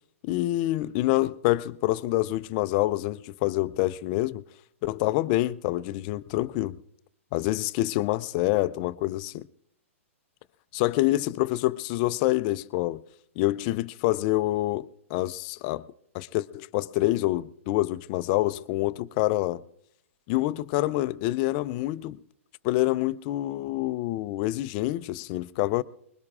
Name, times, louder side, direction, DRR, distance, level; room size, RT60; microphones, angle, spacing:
voice 1, 0.2-4.4 4.8-6.8 7.3-9.5 10.7-13.0 13.4-15.9 16.1-19.6 20.3-22.2 22.6-25.8, left 17 dB, 40° left, 0.5 m, -26 dB
24.0 x 21.5 x 2.4 m
hypercardioid pair, 120°, 8 cm